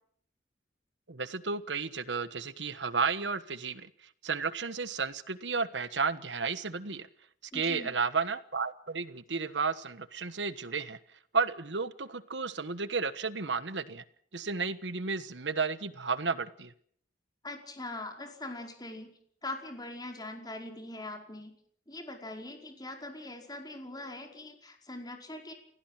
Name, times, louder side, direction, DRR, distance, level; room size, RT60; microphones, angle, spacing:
voice 1, 1.1-3.9 4.2-7.1 7.5-11.0 11.3-14.0 14.3-16.7, right 4 dB, 90° right, 13 dB, 1.3 m, -32 dB
voice 2, 7.5-8.0 17.4-19.1 19.4-21.5 21.9-25.5, left 2 dB, 25° left, 3 dB, 5.0 m, -42 dB
30.0 x 16.0 x 7.6 m, 0.64 s
head